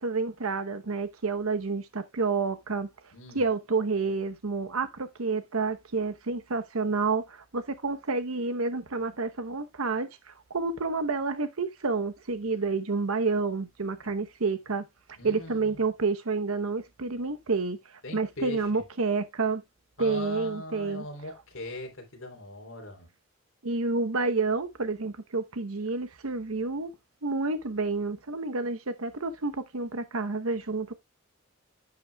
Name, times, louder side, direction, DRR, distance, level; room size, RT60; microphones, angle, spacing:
voice 1, 0.0-2.9 3.3-14.9 15.2-17.8 18.1-19.6 20.0-21.1 23.6-26.9 27.2-30.9, right 4 dB, 85° right, 0.9 m, -29 dB
voice 2, 3.1-3.4 15.2-15.8 18.0-18.8 20.0-23.1, left 1 dB, 65° left, 3.4 m, -40 dB
10.5 x 7.8 x 2.3 m
head